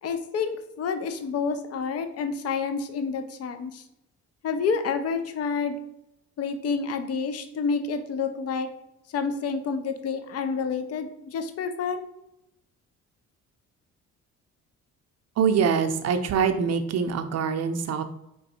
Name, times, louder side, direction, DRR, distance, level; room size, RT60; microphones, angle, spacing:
voice 1, 0.0-3.8 4.4-5.8 6.4-8.7 9.1-12.1, left 5 dB, 55° left, 7 dB, 0.6 m, -29 dB
voice 2, 15.4-18.0, right 6 dB, 55° right, 7 dB, 0.6 m, -24 dB
3.6 x 3.0 x 4.3 m, 0.83 s
cardioid pair, 90°, 30 cm